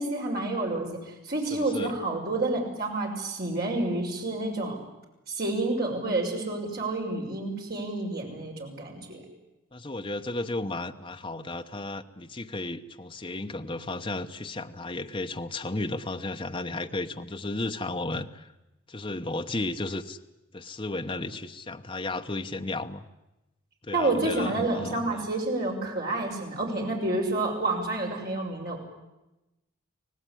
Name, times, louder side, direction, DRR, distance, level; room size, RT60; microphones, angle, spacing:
voice 1, 0.0-4.8 5.3-9.2 23.9-28.8, right 2 dB, 45° right, 0 dB, 6.1 m, -29 dB
voice 2, 1.5-1.9 9.7-18.5 18.9-20.2 20.5-23.0 23.8-25.2, left 2 dB, 25° left, 5 dB, 0.9 m, -34 dB
25.5 x 18.0 x 10.0 m, 0.98 s
head